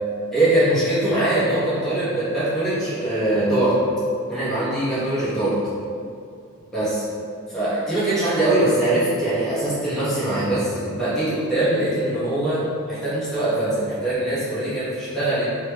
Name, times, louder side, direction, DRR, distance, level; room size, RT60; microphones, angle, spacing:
voice 1, 0.3-3.8 4.3-5.5 6.7-7.1 7.5-15.5, right 1 dB, ahead, -13 dB, 1.3 m, -22 dB
4.1 x 3.2 x 3.0 m, 2.3 s
head